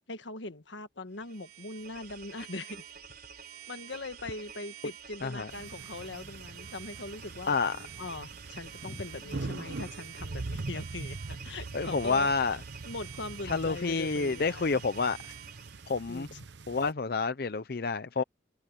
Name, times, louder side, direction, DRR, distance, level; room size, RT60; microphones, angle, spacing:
voice 1, 0.1-2.8 3.7-7.6 8.0-12.3 12.8-14.8 16.1-16.4, left 2 dB, 80° left, 1.5 m, -41 dB
sound 1, 1.1-15.9, right 8 dB, 55° right, 3.9 m, -48 dB
sound 2, 5.5-16.9, right 3 dB, 70° right, 0.9 m, -43 dB
voice 2, 7.5-7.8 11.7-12.6 13.5-15.3 15.9-16.3 16.7-18.2, left 4 dB, 55° left, 0.6 m, -29 dB
head